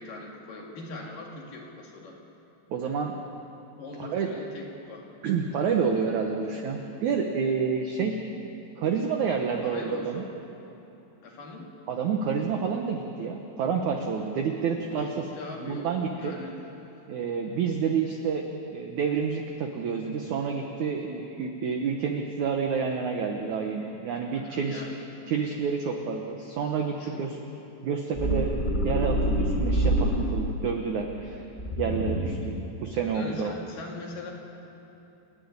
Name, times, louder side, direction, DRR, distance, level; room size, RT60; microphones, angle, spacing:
voice 1, 0.0-2.2 3.8-5.1 9.6-10.4 11.2-11.7 14.7-16.6 24.2-24.9 27.0-27.3 33.1-34.3, left 2 dB, 55° left, -1 dB, 3.7 m, -41 dB
voice 2, 2.7-3.1 4.0-4.3 5.2-8.2 8.8-10.2 11.9-15.3 15.6-16.4 17.1-18.5 18.7-24.8 25.3-27.3 27.8-28.6 28.8-31.5 31.8-33.5, right 6 dB, 75° right, 3 dB, 1.8 m, -29 dB
sound 1, 28.2-30.6 31.6-32.5, right 1 dB, 10° left, 3.4 m, -26 dB
28.5 x 10.5 x 9.6 m, 3.0 s
omnidirectional pair, 4.9 m